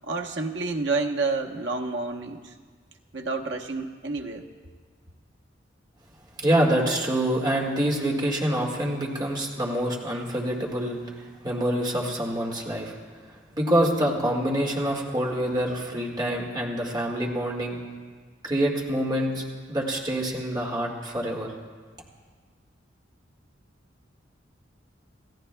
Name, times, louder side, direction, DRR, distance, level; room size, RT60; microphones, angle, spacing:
voice 1, 0.0-2.5 3.1-4.4, right 3 dB, 70° right, 2 dB, 1.0 m, -29 dB
voice 2, 6.4-12.9 13.5-17.8 18.4-21.5, right 1 dB, 25° right, -1 dB, 1.8 m, -26 dB
28.0 x 14.0 x 2.3 m, 1.5 s
head